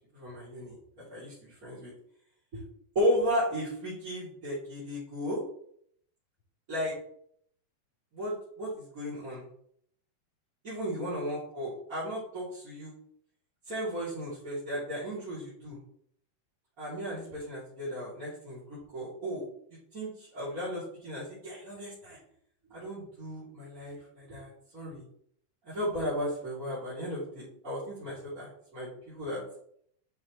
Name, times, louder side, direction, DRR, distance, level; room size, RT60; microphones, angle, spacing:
voice 1, 0.1-0.8 1.1-1.9 2.5-2.6 2.9-5.4 6.7-6.9 8.1-9.5 10.6-12.9 13.7-15.8 16.8-19.4 19.7-22.2 22.7-25.0 25.6-29.4, equal, 25° right, -11 dB, 3.1 m, -35 dB
9.0 x 5.6 x 3.2 m, 0.65 s
omnidirectional pair, 4.1 m